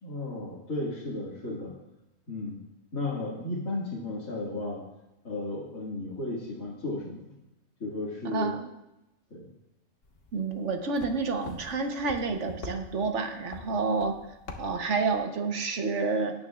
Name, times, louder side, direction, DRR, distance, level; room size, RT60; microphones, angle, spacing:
voice 1, 0.0-1.7 2.3-2.6 2.9-4.8 5.2-7.2 7.8-8.5 9.3-9.5, left 2 dB, 70° left, -8 dB, 2.5 m, -34 dB
voice 2, 8.2-8.7 10.3-14.1 14.6-16.3, right 4 dB, 60° right, 5 dB, 1.3 m, -29 dB
sound 1, 10.0-15.2, left 3 dB, 45° left, 1.3 m, -46 dB
17.5 x 9.4 x 2.4 m, 0.93 s
omnidirectional pair, 1.5 m